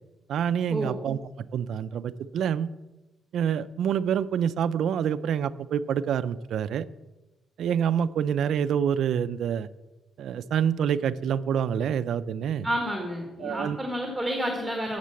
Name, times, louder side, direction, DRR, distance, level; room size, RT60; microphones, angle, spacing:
voice 1, 0.3-1.2 1.5-2.7 3.3-6.9 7.6-9.7 10.2-12.7 13.4-13.8, right 8 dB, 65° right, 12 dB, 0.4 m, -27 dB
voice 2, 12.6-15.0, equal, ahead, 1 dB, 1.4 m, -30 dB
8.2 x 6.7 x 7.5 m, 1.1 s
cardioid pair, 150°, 0 cm